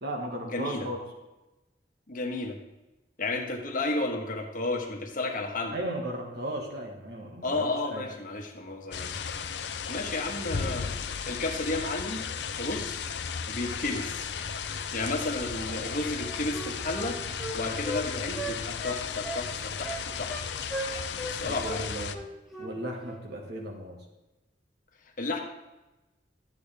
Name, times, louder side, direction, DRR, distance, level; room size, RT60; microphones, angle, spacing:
voice 1, 0.0-1.0 5.7-8.0 15.5-15.8 21.4-22.2 22.6-24.0, right 1 dB, 60° right, 1 dB, 1.8 m, -36 dB
voice 2, 0.5-0.9 2.1-2.6 3.2-5.8 7.4-9.2 9.9-10.9 11.3-12.2 12.6-13.0 13.5-14.3 14.9-17.2 17.5-20.3 21.2-21.8 25.2-25.4, left 2 dB, 45° left, 2 dB, 1.4 m, -32 dB
sound 1, 8.9-22.1, left 6 dB, 65° left, 0.6 m, -35 dB
Wind instrument woodwind instrument, 16.1-18.0 18.4-19.5 19.8-20.4 20.7-21.4 21.6-21.8 22.1-22.7 23.0-23.2, right 1 dB, ahead, 1.8 m, -37 dB
12.0 x 8.3 x 3.5 m, 1.0 s
head